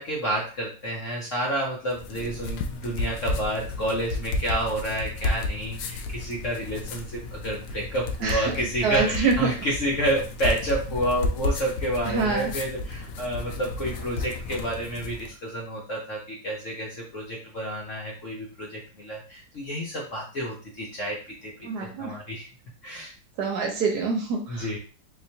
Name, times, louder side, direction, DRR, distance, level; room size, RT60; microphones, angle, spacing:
voice 1, 0.0-22.5 22.8-23.1 24.5-24.8, right 1 dB, 55° left, -3 dB, 0.9 m, -30 dB
sound 1, 1.9-15.4, left 2 dB, 75° left, 1.2 m, -32 dB
voice 2, 8.2-8.5 8.8-9.3 12.0-12.5 21.6-22.2 23.4-24.8, right 4 dB, 65° right, 1 dB, 1.2 m, -26 dB
3.7 x 3.0 x 2.7 m, 0.38 s
omnidirectional pair, 2.1 m